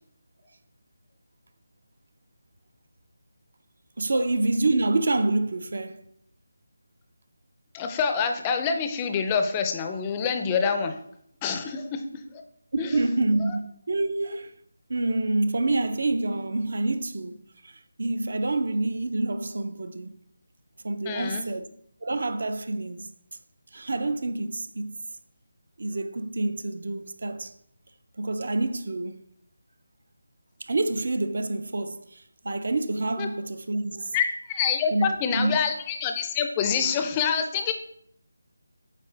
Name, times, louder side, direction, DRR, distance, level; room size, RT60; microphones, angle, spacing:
voice 1, 4.0-6.0 11.6-11.7 12.7-14.5 14.9-20.2 20.8-21.7 22.0-23.1 23.7-25.0 25.8-27.5 28.2-29.2 30.6-34.2 34.9-35.6, right 2 dB, 60° right, 0.6 m, -27 dB
voice 2, 7.7-10.9 11.4-12.0 12.8-12.9 21.1-21.5 33.2-33.3 34.1-37.7, left 6 dB, 15° left, 0.5 m, -26 dB
8.3 x 4.2 x 3.3 m
figure-of-eight pair, 170°, 0 cm